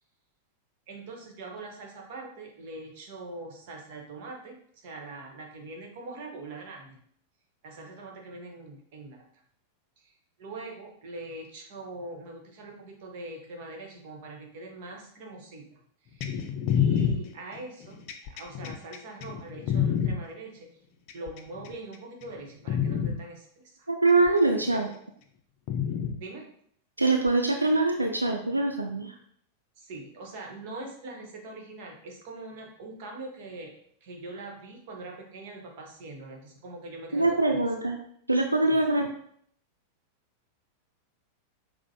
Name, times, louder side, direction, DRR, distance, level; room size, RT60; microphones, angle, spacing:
voice 1, 0.9-7.0 7.6-9.2 10.0-10.1 10.4-16.3 16.7-20.7 21.1-23.7 24.7-24.9 26.2-26.5 29.8-33.7 34.0-37.6 38.7-38.8, right 2 dB, 50° right, 1 dB, 1.0 m, -43 dB
sound 1, 16.2-20.1 21.1-21.7 22.2-22.4 22.7-23.1 24.3-24.4 25.7-26.1 27.3-27.4, left 8 dB, 40° left, 0.4 m, -27 dB
voice 2, 23.9-24.9 27.0-29.2 37.1-38.0 38.3-39.1, right 2 dB, 85° right, 3 dB, 0.3 m, -23 dB
6.1 x 2.1 x 2.8 m, 0.65 s
figure-of-eight pair, 90°, 0 cm